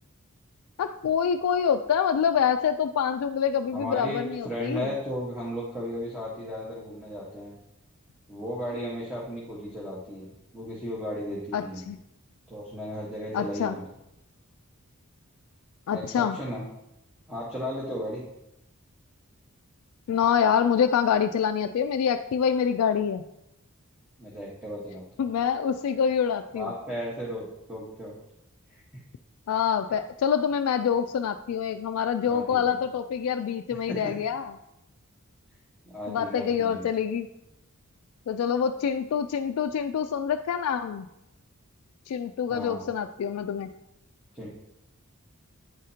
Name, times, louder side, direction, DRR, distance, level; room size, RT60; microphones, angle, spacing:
voice 1, 0.8-4.9 11.5-12.0 13.3-13.8 15.9-16.4 20.1-23.2 25.2-26.7 29.5-34.5 36.1-37.3 38.3-41.1 42.1-43.7, left 7 dB, 75° left, 7 dB, 0.3 m, -26 dB
voice 2, 3.7-7.5 8.3-11.8 12.5-13.8 15.9-16.6 17.3-18.3 24.2-25.3 26.5-28.1 32.3-32.6 33.7-34.1 35.9-36.9 42.5-42.9 44.3-44.5, equal, 5° right, -6 dB, 1.3 m, -35 dB
9.5 x 4.9 x 2.8 m, 0.87 s
head